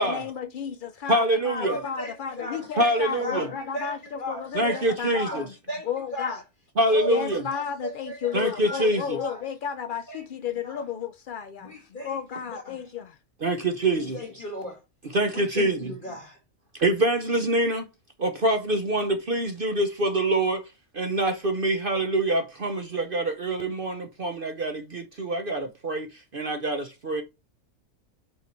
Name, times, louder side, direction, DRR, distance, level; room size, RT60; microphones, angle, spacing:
voice 1, 0.0-5.5 5.9-6.4 7.1-11.7 12.0-13.2, left 7 dB, 70° left, 0.5 m, -33 dB
voice 2, 1.1-1.8 2.8-3.5 4.5-5.4 6.8-7.4 8.3-9.2 13.4-14.2 15.1-15.9 16.8-17.8 18.2-20.6 20.9-26.1 26.3-27.2, right 1 dB, 45° right, 0.9 m, -25 dB
voice 3, 1.6-6.4 6.9-9.4 10.1-10.9 11.6-12.8 13.9-14.8 15.3-16.4, equal, 35° left, 2.5 m, -37 dB
5.4 x 4.8 x 4.4 m
omnidirectional pair, 1.5 m